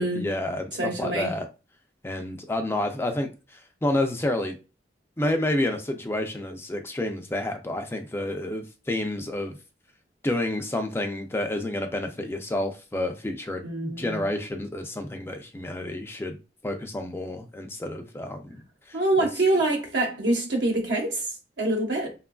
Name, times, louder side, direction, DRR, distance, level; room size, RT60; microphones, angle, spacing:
voice 1, 0.0-1.5 2.0-4.6 5.2-9.6 10.2-16.4 16.6-18.6 18.9-19.0, left 1 dB, 15° left, 0.4 m, -29 dB
voice 2, 0.8-1.3 13.6-14.3 18.9-22.1, right 2 dB, 80° right, 0.9 m, -25 dB
3.0 x 2.3 x 2.2 m
head